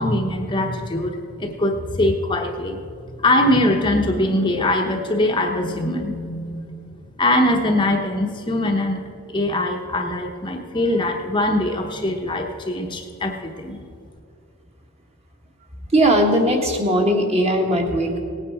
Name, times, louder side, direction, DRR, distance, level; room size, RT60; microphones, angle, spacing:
voice 1, 0.0-2.8 3.2-6.8 7.2-9.0 9.3-13.8, left 1 dB, 20° left, 2 dB, 0.8 m, -22 dB
voice 2, 15.9-18.2, right 1 dB, 30° right, 2 dB, 1.5 m, -18 dB
18.0 x 9.0 x 4.8 m, 2.4 s
head